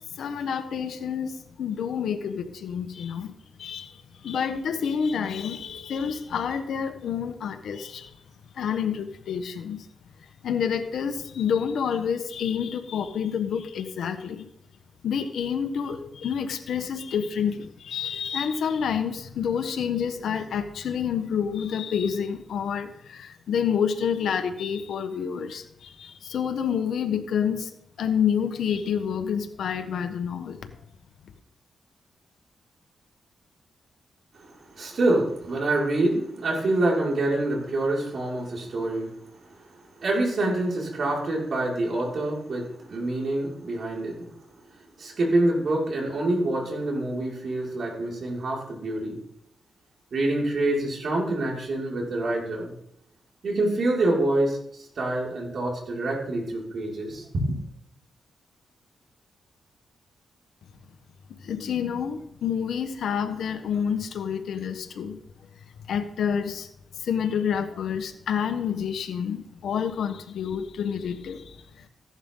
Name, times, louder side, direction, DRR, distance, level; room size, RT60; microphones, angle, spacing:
voice 1, 0.1-3.3 3.6-8.1 8.5-9.9 10.4-14.5 15.0-30.6 61.4-65.2 65.9-66.7 67.0-71.9, left 7 dB, 75° left, 9 dB, 1.3 m, -28 dB
voice 2, 34.3-44.3 45.0-49.2 50.1-52.7 53.4-57.6, right 2 dB, 60° right, -3 dB, 5.6 m, -26 dB
16.0 x 11.0 x 3.9 m, 0.77 s
cardioid pair, 70°, 0 cm